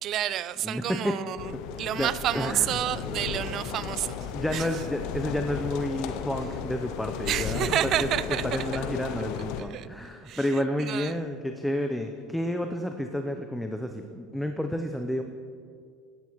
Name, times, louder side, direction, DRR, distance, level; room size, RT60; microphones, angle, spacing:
voice 1, 0.0-1.5 1.8-4.2 4.5-4.7 7.3-8.6 9.6-9.9 10.2-10.5 10.8-11.2, right 12 dB, 50° right, 0.3 m, -29 dB
voice 2, 0.6-1.2 1.5-1.6 2.0-2.8 3.0-3.7 4.3-8.1 8.4-15.2, left 1 dB, 5° left, 0.6 m, -31 dB
sound 1, 1.4-9.6, left 7 dB, 65° left, 0.6 m, -35 dB
12.5 x 9.4 x 3.0 m
hypercardioid pair, 85°, 0 cm